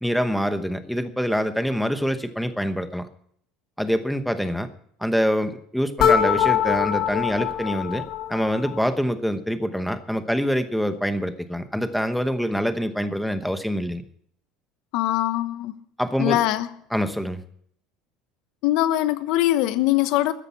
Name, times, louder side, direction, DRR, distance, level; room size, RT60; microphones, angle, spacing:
voice 1, 0.0-3.1 3.8-4.7 5.0-14.0 16.0-16.4 16.9-17.4, equal, ahead, 1.0 m, -25 dB
sound 1, 6.0-8.9, left 9 dB, 45° left, 1.3 m, -23 dB
voice 2, 14.9-15.7 16.2-16.7 18.6-20.3, left 15 dB, 65° left, 1.0 m, -22 dB
14.0 x 10.0 x 7.1 m
cardioid pair, 150°, 0 cm